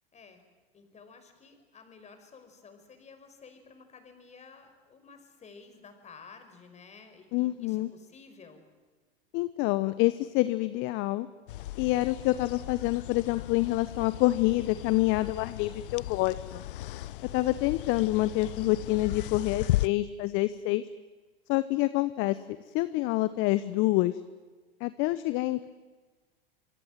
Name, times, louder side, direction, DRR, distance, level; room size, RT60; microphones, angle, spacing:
voice 1, 0.1-0.4 0.7-8.6, left 5 dB, 25° left, 7 dB, 5.5 m, -52 dB
voice 2, 7.3-7.9 9.3-11.3 11.8-16.6 17.3-20.8 21.5-22.4 22.7-24.2 24.8-25.7, left 18 dB, 45° left, 14 dB, 1.1 m, -27 dB
sound 1, 11.5-19.9, left 16 dB, 65° left, 0.7 m, -36 dB
26.5 x 24.5 x 7.6 m, 1.3 s
hypercardioid pair, 95°, 29 cm